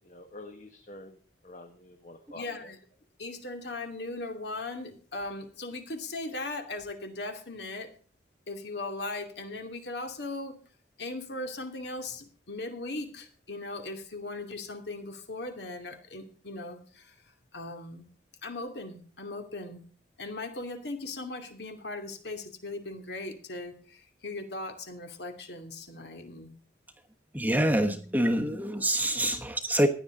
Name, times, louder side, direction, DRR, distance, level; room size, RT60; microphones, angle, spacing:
voice 1, 0.0-2.7, left 2 dB, 40° left, 5 dB, 1.4 m, -48 dB
voice 2, 2.3-2.8 3.2-7.9 8.5-10.6 11.0-17.2 17.5-18.0 18.4-19.8 20.2-26.5 29.3-29.4, left 2 dB, 60° left, 5 dB, 2.7 m, -38 dB
voice 3, 27.3-29.9, right 1 dB, 10° right, 5 dB, 1.2 m, -26 dB
16.0 x 10.5 x 3.9 m, 0.42 s
head